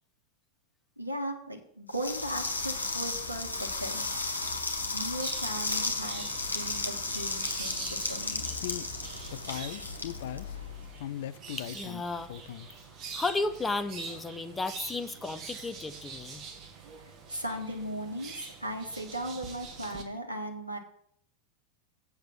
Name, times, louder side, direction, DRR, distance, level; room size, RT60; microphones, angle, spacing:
voice 1, 1.0-4.0 4.9-8.5 17.3-20.8, right 1 dB, 85° right, 3 dB, 1.7 m, -37 dB
sound 1, 1.9-10.9, left 3 dB, 80° left, 1.7 m, -34 dB
sound 2, 5.2-20.0, right 5 dB, 30° right, 1.9 m, -45 dB
sound 3, 8.5-8.9 9.3-10.6 11.0-12.0 12.3-12.8 13.1-13.2 13.6-13.7, left 12 dB, 55° left, 0.5 m, -38 dB
voice 2, 11.6-12.3 13.1-16.4, left 3 dB, 10° left, 9 dB, 0.9 m, -33 dB
8.0 x 6.9 x 7.2 m, 0.66 s
figure-of-eight pair, 90°, 0 cm